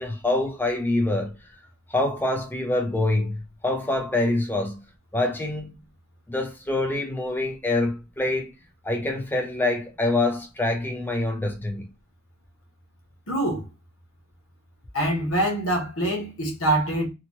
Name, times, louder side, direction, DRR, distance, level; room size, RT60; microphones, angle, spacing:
voice 1, 0.0-1.3 1.9-4.8 5.1-5.8 6.3-8.5 8.8-11.9, left 2 dB, 10° left, 0.6 m, -25 dB
voice 2, 13.3-13.6 14.9-17.1, right 1 dB, 85° left, 1.1 m, -24 dB
2.9 x 2.3 x 2.9 m
head